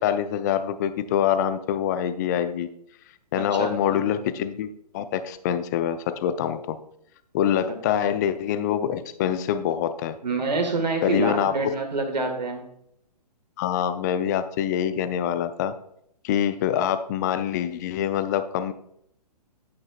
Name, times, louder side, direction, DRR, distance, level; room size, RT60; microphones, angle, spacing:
voice 1, 0.0-2.7 3.3-4.7 4.9-6.8 7.3-10.2 11.0-11.5 13.6-15.7 16.2-18.7, left 9 dB, 25° left, 12 dB, 0.4 m, -25 dB
voice 2, 3.4-4.0 10.2-12.6, right 3 dB, 80° right, 5 dB, 1.7 m, -27 dB
9.1 x 8.8 x 2.4 m, 0.73 s
figure-of-eight pair, 125°, 21 cm